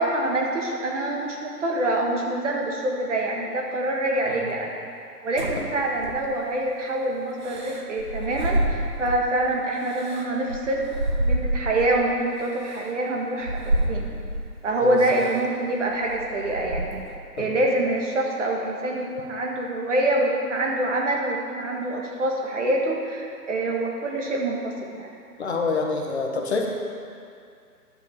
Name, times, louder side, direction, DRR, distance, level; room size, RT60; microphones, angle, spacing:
voice 1, 0.0-4.7 5.2-10.9 11.2-14.1 14.6-17.0 17.4-25.1, right 1 dB, 50° right, -1 dB, 1.8 m, -25 dB
sound 1, 5.4-6.6 7.4-9.3 9.8-12.0 12.7-12.8 13.4-14.5 15.1-15.4 15.8-17.2, right 1 dB, 30° right, 0.7 m, -28 dB
voice 2, 14.8-15.2 17.4-17.5 25.4-26.7, left 4 dB, 40° left, 1 dB, 1.3 m, -27 dB
11.0 x 5.9 x 7.0 m, 2.4 s
hypercardioid pair, 150°, 48 cm